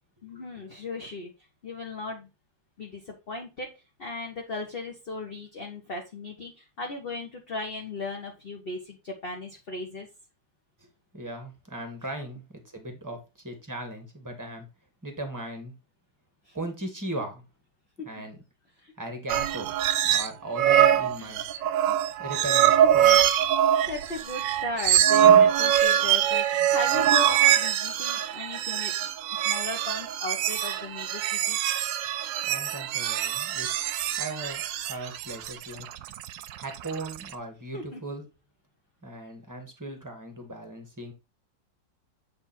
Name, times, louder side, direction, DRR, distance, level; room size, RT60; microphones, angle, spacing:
voice 1, 0.2-1.3 1.6-2.3 2.8-3.7 4.0-10.1 16.5-16.6 18.0-18.1 18.8-18.9 21.2-21.3 21.9-22.0 23.9-31.6 37.7-38.0, left 2 dB, 40° left, 1.1 m, -37 dB
voice 2, 11.1-14.7 15.0-15.7 16.5-17.4 18.0-18.4 19.0-19.7 20.0-21.4 22.2-23.3 32.4-33.7 34.2-35.9 36.6-38.3 39.0-41.1, right 1 dB, 10° right, 1.4 m, -37 dB
sound 1, 19.3-20.3 20.6-37.3, right 10 dB, 85° right, 1.3 m, -23 dB
7.7 x 3.5 x 4.2 m
omnidirectional pair, 1.9 m